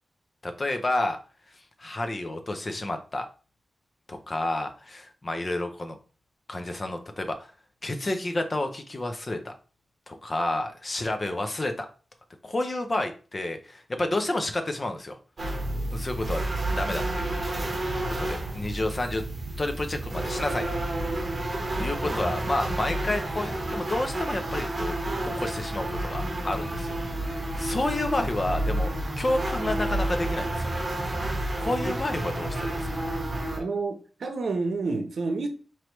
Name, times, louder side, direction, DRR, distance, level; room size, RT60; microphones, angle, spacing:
voice 1, 0.4-1.2 1.8-3.3 4.1-6.0 6.5-7.5 7.8-9.5 10.1-11.9 12.4-15.2 15.9-16.4 16.7-17.3 18.1-19.2 19.6-20.7 21.7-25.0 25.3-26.9 27.6-28.9 29.2-30.8 31.6-33.0, left 2 dB, 30° left, 0.5 m, -30 dB
sound 1, 15.4-33.6, right 1 dB, 25° right, 1.1 m, -30 dB
voice 2, 33.6-35.5, right 3 dB, 70° right, 0.7 m, -29 dB
4.7 x 3.0 x 3.0 m
wide cardioid pair, 170°, 0 cm